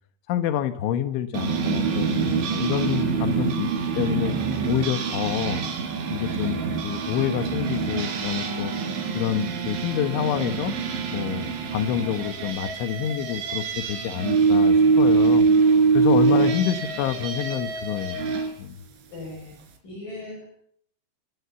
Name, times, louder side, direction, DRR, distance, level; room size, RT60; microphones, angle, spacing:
voice 1, 0.3-3.7 4.0-4.3 4.7-5.6 6.1-8.7 9.2-10.7 11.1-18.3 18.6-18.8, left 10 dB, 90° left, 10 dB, 3.8 m, -27 dB
sound 1, 1.3-18.5, right 5 dB, 90° right, 5.9 m, -24 dB
voice 2, 16.3-16.6 19.1-20.5, left 2 dB, 45° left, 0 dB, 8.6 m, -38 dB
29.0 x 20.5 x 7.0 m, 0.67 s
omnidirectional pair, 5.3 m